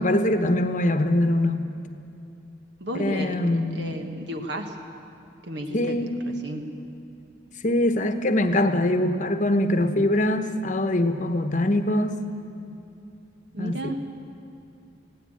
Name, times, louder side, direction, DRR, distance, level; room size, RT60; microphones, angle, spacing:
voice 1, 0.0-1.6 3.0-4.0 5.7-6.2 7.6-12.2 13.6-14.0, left 1 dB, 45° left, 8 dB, 1.0 m, -23 dB
voice 2, 2.8-3.4 3.7-4.8 5.4-6.7 13.5-14.0, equal, 65° right, 4 dB, 1.5 m, -33 dB
19.0 x 17.0 x 8.7 m, 2.7 s
head